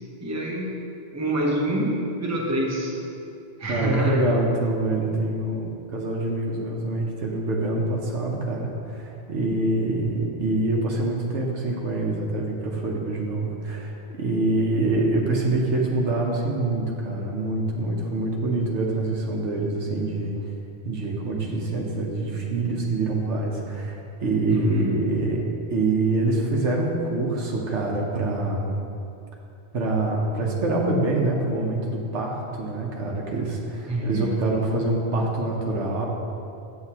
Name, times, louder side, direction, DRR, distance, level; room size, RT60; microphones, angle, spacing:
voice 1, 0.2-0.8 1.1-3.0 3.6-4.4 24.5-25.1 33.9-34.4, equal, 15° right, -3 dB, 0.9 m, -26 dB
voice 2, 3.7-20.4 20.8-28.8 29.7-36.0, right 2 dB, 75° right, 0 dB, 1.2 m, -25 dB
8.1 x 8.0 x 2.9 m, 2.7 s
omnidirectional pair, 1.2 m